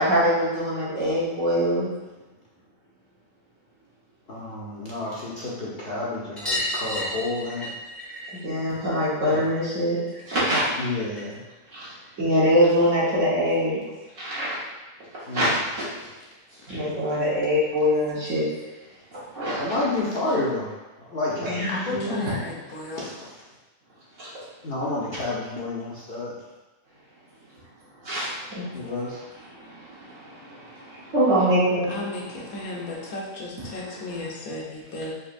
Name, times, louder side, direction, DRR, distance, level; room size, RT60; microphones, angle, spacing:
voice 1, 0.0-1.9 8.3-10.0 10.3-10.6 11.7-11.9 12.2-13.8 14.2-14.6 15.3-15.8 16.7-18.5 19.3-19.7 21.3-22.4 24.2-24.3 28.0-28.8 29.5-33.0 33.6-34.3, equal, 65° right, -9 dB, 1.6 m, -24 dB
voice 2, 4.3-7.7 9.3-9.5 10.5-11.4 15.3-15.6 19.6-23.4 24.6-26.4 28.7-29.2, left 2 dB, 55° left, -6 dB, 0.8 m, -30 dB
sound 1, 6.4-11.5 11.8-12.9 14.3-14.4 14.6-14.7 15.0-15.1 16.4-16.5 16.7-16.8 17.2-17.3 18.5-18.6 19.4-19.5, left 1 dB, ahead, 0.6 m, -35 dB
voice 3, 21.7-23.0 31.9-35.1, left 2 dB, 80° left, -3 dB, 1.2 m, -34 dB
4.2 x 2.7 x 2.5 m, 1.1 s
omnidirectional pair, 1.5 m